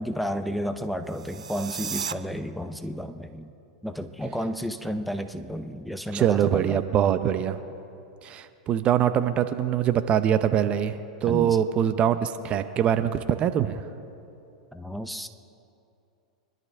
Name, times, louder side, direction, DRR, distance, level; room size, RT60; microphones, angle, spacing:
voice 1, 0.0-3.5 3.8-6.8 11.3-11.6 14.7-15.3, equal, ahead, 9 dB, 0.7 m, -32 dB
sound 1, 1.1-2.1, right 7 dB, 90° right, 0.5 m, -34 dB
voice 2, 6.1-7.6 8.2-13.8, right 9 dB, 35° right, 11 dB, 0.7 m, -23 dB
25.5 x 12.0 x 3.5 m, 2.7 s
hypercardioid pair, 110°, 3 cm